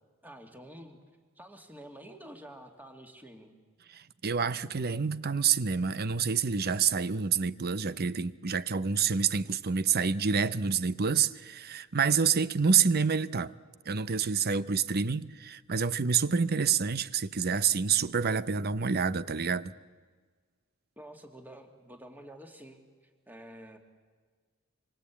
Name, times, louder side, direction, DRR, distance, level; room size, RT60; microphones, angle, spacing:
voice 1, 0.2-1.0 1.4-3.6 21.0-22.9 23.3-23.8, right 1 dB, 10° right, 2.5 m, -49 dB
voice 2, 3.9-13.5 13.9-19.7, right 6 dB, 50° right, 0.7 m, -28 dB
26.0 x 25.0 x 8.5 m
head